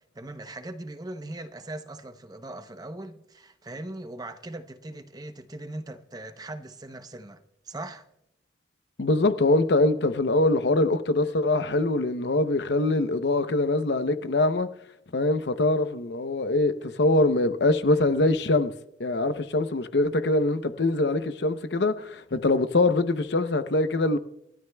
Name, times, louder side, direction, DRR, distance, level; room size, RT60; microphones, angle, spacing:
voice 1, 0.1-8.0, right 2 dB, 20° right, 0.7 m, -40 dB
voice 2, 9.0-14.7 15.1-18.7 19.0-24.2, left 2 dB, 65° left, 0.7 m, -23 dB
28.0 x 13.0 x 2.3 m
head